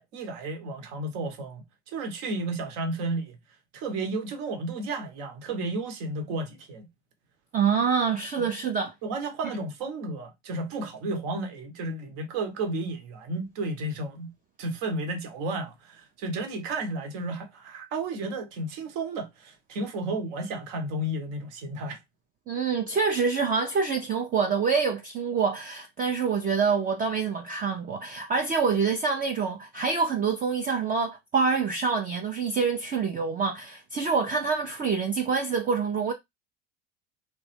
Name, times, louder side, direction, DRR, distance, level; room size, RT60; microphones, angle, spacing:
voice 1, 0.0-1.6 1.9-3.4 3.7-6.9 8.4-8.5 9.0-14.3 14.6-22.0, right 2 dB, 65° right, 1.0 m, -32 dB
voice 2, 7.5-8.9 22.5-36.1, right 5 dB, 25° right, 0.4 m, -26 dB
3.0 x 2.1 x 3.2 m
hypercardioid pair, 80°, 38 cm